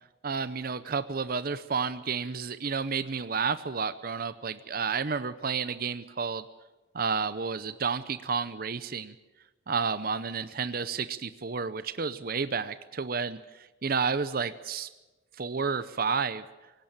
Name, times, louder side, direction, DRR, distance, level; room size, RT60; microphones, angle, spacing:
voice 1, 0.2-6.5 6.9-9.1 9.7-14.9 15.4-16.4, right 5 dB, 50° right, 13 dB, 0.7 m, -31 dB
18.5 x 17.0 x 8.8 m, 1.1 s
head